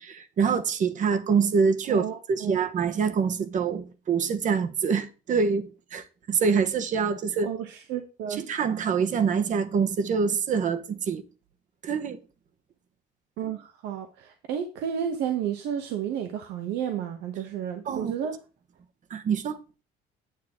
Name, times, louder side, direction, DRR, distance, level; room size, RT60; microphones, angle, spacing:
voice 1, 0.0-7.5 8.3-11.2 11.8-12.2 17.9-18.1 19.1-19.6, right 6 dB, 50° right, 1.1 m, -25 dB
voice 2, 1.9-2.6 7.4-8.4 13.4-18.4, right 9 dB, 85° right, 1.1 m, -32 dB
9.4 x 8.0 x 3.6 m
cardioid pair, 110°, 17 cm